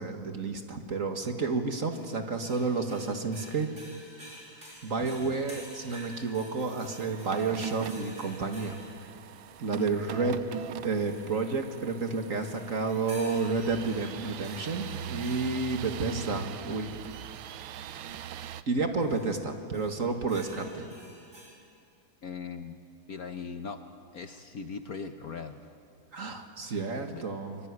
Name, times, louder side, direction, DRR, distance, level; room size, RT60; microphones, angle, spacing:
voice 1, 0.0-3.7 4.8-8.8 9.6-10.4 10.8-17.0 18.7-20.9 26.1-27.6, right 4 dB, 40° right, 5 dB, 1.9 m, -30 dB
sound 1, 1.9-9.1 10.9-11.5 12.4-15.9 19.0-19.4 19.7-21.5, right 1 dB, 25° right, 7.7 m, -50 dB
voice 2, 5.0-5.4 9.8-9.9 22.2-22.7 23.1-23.8 24.1-25.7 27.1-27.2, left 5 dB, 55° left, 8 dB, 1.2 m, -39 dB
sound 2, 5.0-18.6, right 9 dB, 80° right, 1.6 m, -42 dB
24.5 x 23.5 x 9.7 m, 2.4 s
omnidirectional pair, 2.1 m